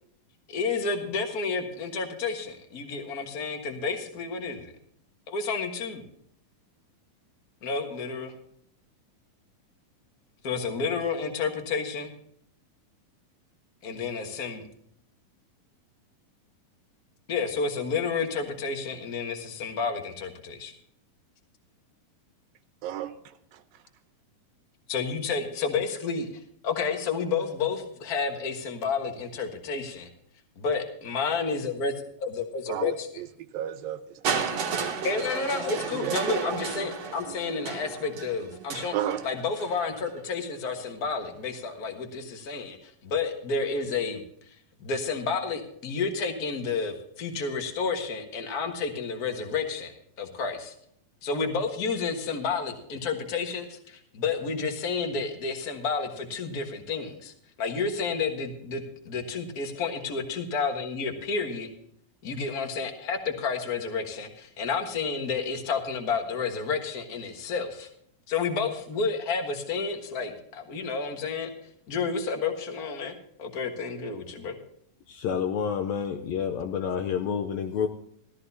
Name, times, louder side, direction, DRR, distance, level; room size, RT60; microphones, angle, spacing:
voice 1, 0.5-4.7 5.3-6.0 7.6-8.3 10.4-12.1 13.8-14.6 17.3-20.7 24.9-26.3 26.6-30.1 30.6-33.1 35.0-39.0 39.2-44.2 44.5-44.6 44.8-50.7 51.2-57.3 57.6-61.7 62.2-67.9 68.3-71.5 71.9-74.6, left 5 dB, 55° left, 5 dB, 1.0 m, -30 dB
voice 2, 22.8-23.6 32.7-34.5 35.9-36.2 38.9-39.2, right 11 dB, 80° right, 9 dB, 2.5 m, -33 dB
Crushing, 34.2-40.2 41.1-41.2, right 6 dB, 55° right, 2.3 m, -33 dB
voice 3, 75.1-77.9, left 7 dB, 80° left, 5 dB, 1.6 m, -29 dB
16.5 x 13.5 x 2.8 m, 0.69 s
omnidirectional pair, 4.1 m